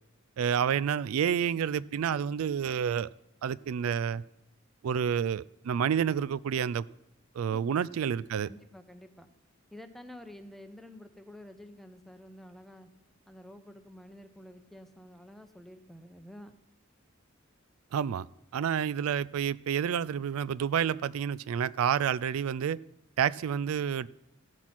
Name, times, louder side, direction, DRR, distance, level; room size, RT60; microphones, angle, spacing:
voice 1, 0.4-3.1 3.4-4.2 4.8-6.8 7.3-8.5 17.9-18.3 18.5-22.8 23.2-24.1, right 8 dB, 85° right, 0.3 m, -29 dB
voice 2, 8.4-9.3 9.7-12.9 13.3-16.5, left 1 dB, ahead, 0.7 m, -49 dB
15.0 x 6.1 x 6.0 m
head